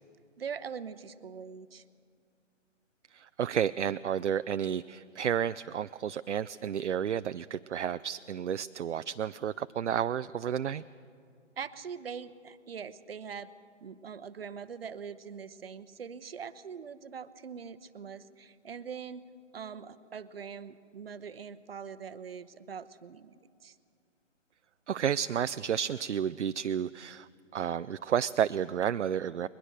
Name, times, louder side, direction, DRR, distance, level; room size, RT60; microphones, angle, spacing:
voice 1, 0.4-1.8 11.6-13.5 13.8-19.2 19.5-23.4 23.6-23.7, right 6 dB, 50° right, 14 dB, 0.9 m, -42 dB
voice 2, 3.1-10.8 24.9-29.5, right 9 dB, 65° right, 12 dB, 0.5 m, -31 dB
21.5 x 20.5 x 6.6 m, 2.3 s
figure-of-eight pair, 155°, 38 cm